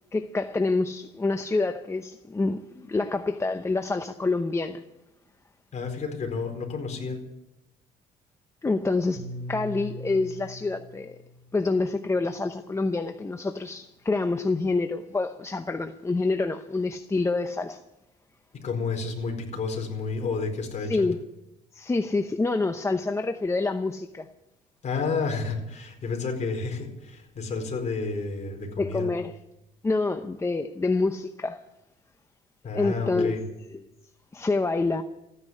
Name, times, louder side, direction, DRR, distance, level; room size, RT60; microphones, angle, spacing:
voice 1, 0.1-4.8 8.6-11.2 11.5-17.8 20.9-21.2 21.7-24.3 28.8-29.3 29.8-31.6 32.7-33.4 33.7-33.9 34.3-35.0, left 3 dB, 15° left, 0.8 m, -27 dB
voice 2, 5.7-7.2 18.6-21.1 24.8-29.1 32.6-33.4, left 4 dB, 45° left, 4.5 m, -30 dB
Piano, 9.2-13.6, right 1 dB, 35° right, 7.5 m, -42 dB
15.0 x 10.0 x 9.8 m
cardioid pair, 110°, 17 cm